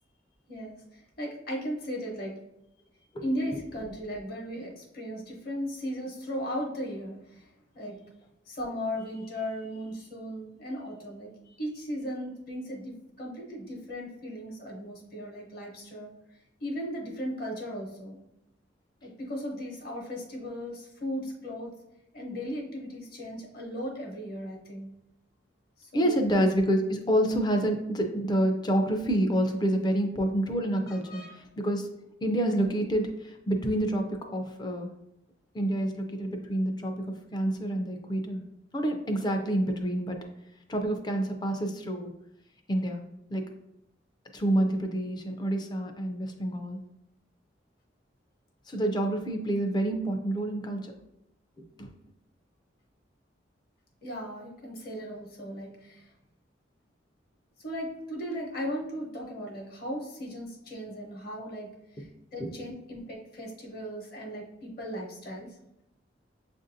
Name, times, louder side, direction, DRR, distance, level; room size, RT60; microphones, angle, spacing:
voice 1, 1.2-2.3 3.2-7.5 7.7-8.0 8.5-16.1 16.6-18.2 19.0-21.7 22.1-24.9 25.8-26.3 30.9-31.4 54.0-56.0 57.6-61.7 62.0-62.1 62.3-65.5, equal, 55° left, -1 dB, 0.9 m, -37 dB
voice 2, 25.9-31.9 32.2-34.9 35.5-38.4 38.7-40.2 40.7-42.1 42.7-43.0 43.3-43.5 44.3-46.8 48.7-50.9 51.8-51.9 62.0-62.1 62.4-62.5, right 1 dB, 20° left, 4 dB, 0.4 m, -28 dB
7.0 x 2.6 x 2.6 m, 0.85 s
head